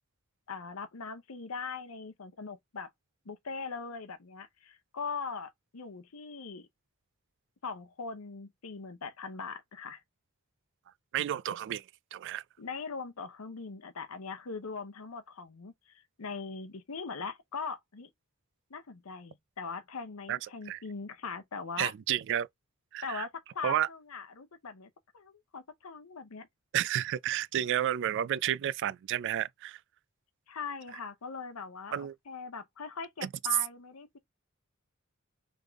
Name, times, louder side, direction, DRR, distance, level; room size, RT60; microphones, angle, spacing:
voice 1, 0.5-2.9 3.2-6.7 7.6-10.0 12.6-18.1 18.7-21.9 23.0-26.5 30.5-34.2, left 5 dB, 85° left, 0.8 m, -41 dB
voice 2, 11.1-11.8 12.1-12.4 20.3-20.4 20.7-20.8 21.8-22.5 22.9-23.3 23.6-23.9 26.7-29.8 31.9-32.1 33.2-33.3, right 11 dB, 60° right, 0.3 m, -31 dB
3.6 x 3.5 x 3.5 m
head